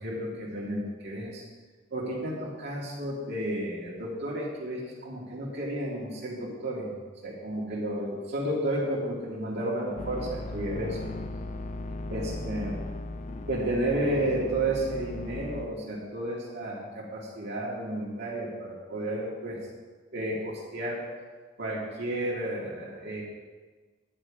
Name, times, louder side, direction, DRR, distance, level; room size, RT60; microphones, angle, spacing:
voice 1, 0.0-1.4 1.9-6.9 7.2-11.0 12.1-12.8 13.5-19.6 20.1-21.1 21.6-23.2, right 1 dB, 60° right, -4 dB, 2.2 m, -32 dB
sound 1, 10.0-15.7, left 2 dB, 40° left, 0.6 m, -37 dB
10.5 x 9.0 x 4.9 m, 1.4 s
head